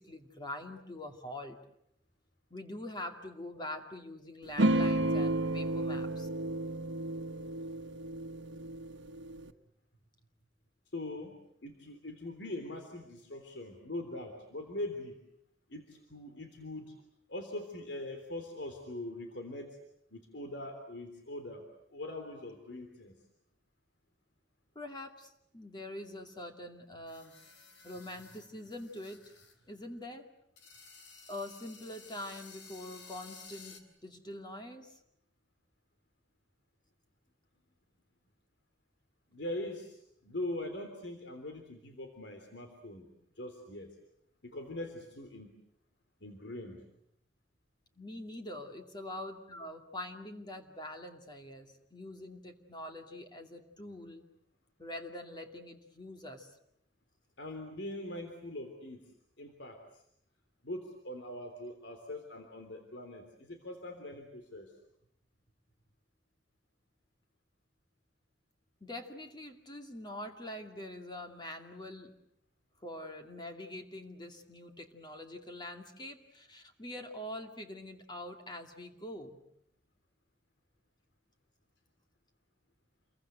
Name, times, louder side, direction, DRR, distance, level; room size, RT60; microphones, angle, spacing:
voice 1, 0.0-1.6 2.5-6.3 24.7-27.4 27.8-29.3 29.7-30.3 31.3-35.0 48.0-54.2 54.8-56.5 68.8-72.1 72.8-79.4, left 1 dB, 25° left, 4 dB, 2.5 m, -44 dB
sound 1, 4.6-9.5, right 1 dB, 90° right, 1.4 m, -32 dB
voice 2, 10.9-15.2 15.7-17.0 17.3-19.8 20.1-21.6 21.9-23.1 39.3-43.1 43.4-44.0 44.4-45.5 46.2-46.8 57.4-59.0 59.4-60.0 60.6-64.7, left 1 dB, 70° left, 5 dB, 3.5 m, -42 dB
sound 2, 27.1-29.6 29.8-29.9 30.6-33.8, left 5 dB, 85° left, 3.8 m, -54 dB
29.0 x 23.0 x 7.9 m, 0.75 s
head